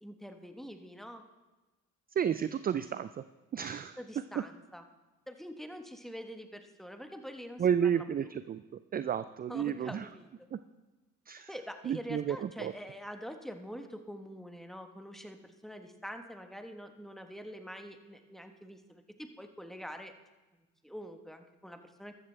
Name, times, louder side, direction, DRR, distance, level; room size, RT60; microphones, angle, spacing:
voice 1, 0.0-1.2 4.0-4.8 5.3-8.3 9.5-10.3 11.5-20.1 20.5-22.1, equal, ahead, 6 dB, 1.2 m, -45 dB
voice 2, 2.2-3.2 3.5-4.0 4.4-4.5 7.6-8.6 8.9-10.1 10.5-10.6 11.3-11.5 11.8-12.7, right 8 dB, 30° right, 13 dB, 0.4 m, -31 dB
13.5 x 13.0 x 3.3 m, 1.1 s
supercardioid pair, 80°, 33 cm